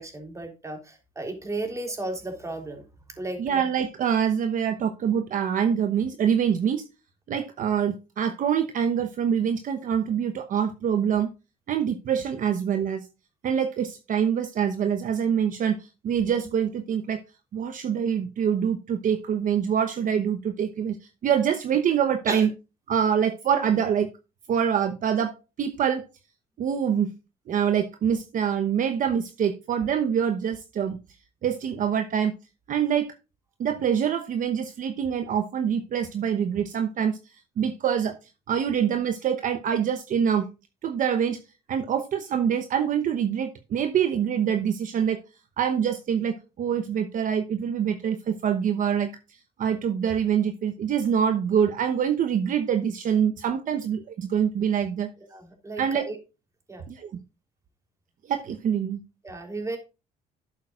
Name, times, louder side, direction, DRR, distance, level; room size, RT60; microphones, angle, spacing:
voice 1, 0.0-2.8 3.2-3.4 22.3-22.5 55.3-56.2 56.7-56.8 59.2-59.8, right 2 dB, 20° right, 3.4 m, -34 dB
voice 2, 3.4-6.8 7.3-11.3 11.7-13.1 13.4-17.2 17.5-21.0 21.2-22.5 22.9-24.1 24.5-26.0 26.6-27.1 27.5-31.0 31.4-32.3 32.7-33.1 33.6-37.2 37.6-38.2 38.5-40.5 40.8-41.4 41.7-45.2 45.6-55.1 55.8-56.1 56.9-57.2 58.2-59.0, right 8 dB, 50° right, 1.0 m, -25 dB
11.5 x 8.4 x 2.5 m
cardioid pair, 110°, 17 cm